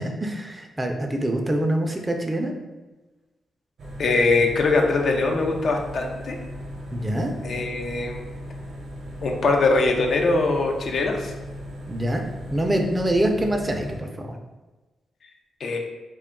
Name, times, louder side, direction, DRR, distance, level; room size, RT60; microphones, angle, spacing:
voice 1, 0.0-2.5 6.9-7.3 11.9-12.2 12.5-14.3, right 1 dB, 25° right, 3 dB, 0.4 m, -25 dB
sound 1, 3.8-14.0, equal, 65° right, 0.6 m, -37 dB
voice 2, 4.0-6.4 7.4-8.2 9.2-11.3 15.6-15.8, left 3 dB, 65° left, 2 dB, 0.4 m, -22 dB
2.2 x 2.2 x 3.6 m, 1.2 s
supercardioid pair, 60°, 0 cm